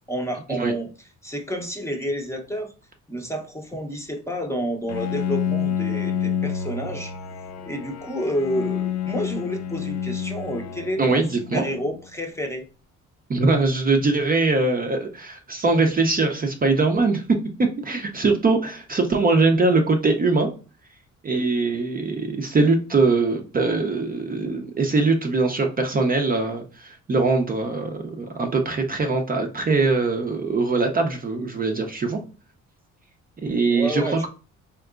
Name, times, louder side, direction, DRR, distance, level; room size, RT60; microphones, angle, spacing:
voice 1, 0.1-0.9 1.2-2.7 3.1-7.1 7.6-11.2 11.5-12.6 33.7-34.3, equal, 10° left, 2 dB, 0.7 m, -29 dB
Bowed string instrument, 4.9-12.0, left 8 dB, 65° left, 0.4 m, -29 dB
voice 2, 11.0-11.6 13.3-17.2 17.8-20.5 21.2-32.2 33.4-34.3, right 3 dB, 30° right, 3 dB, 0.5 m, -22 dB
3.5 x 2.9 x 2.4 m, 0.35 s
cardioid pair, 90°, 30 cm